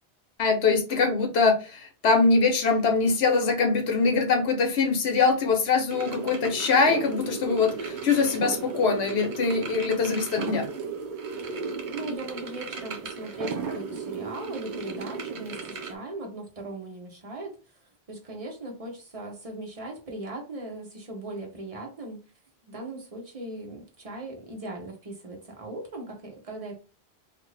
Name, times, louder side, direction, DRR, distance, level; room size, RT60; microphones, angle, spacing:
voice 1, 0.4-10.7, left 4 dB, 75° left, 1.0 m, -23 dB
sound 1, 5.9-16.0, right 5 dB, 55° right, 0.6 m, -35 dB
voice 2, 11.4-17.6 18.1-22.2 22.6-26.8, right 2 dB, 35° right, 0.9 m, -39 dB
2.6 x 2.5 x 3.2 m
omnidirectional pair, 1.1 m